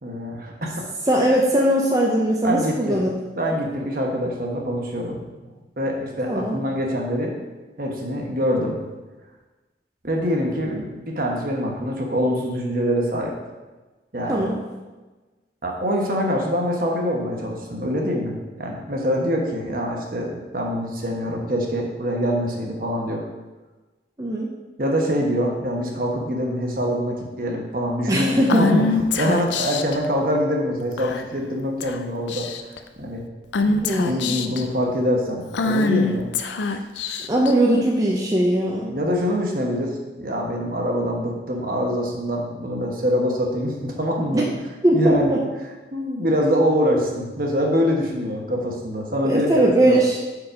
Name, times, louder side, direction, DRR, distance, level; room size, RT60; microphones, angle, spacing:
voice 1, 0.0-0.8 2.4-3.1 3.4-5.3 5.8-7.3 7.8-8.8 10.0-13.3 14.1-14.4 15.6-23.2 24.8-32.5 33.0-33.2 33.6-36.3 38.9-39.9 40.2-44.6 44.9-45.4 45.9-50.0, equal, 50° right, 0 dB, 1.1 m, -24 dB
voice 2, 1.1-3.1 6.3-6.5 14.3-14.6 24.2-24.5 28.1-28.7 33.7-34.4 37.3-38.9 44.3-44.5 44.8-45.4 49.2-50.2, right 1 dB, 20° right, -2 dB, 0.6 m, -20 dB
Female speech woman speaking / Whispering, 28.5-30.0 31.0-31.4 31.8-32.0 32.3-32.8 33.5-34.6 35.5-37.5, left 3 dB, 85° left, 0.5 m, -23 dB
5.2 x 4.8 x 5.1 m, 1.2 s
head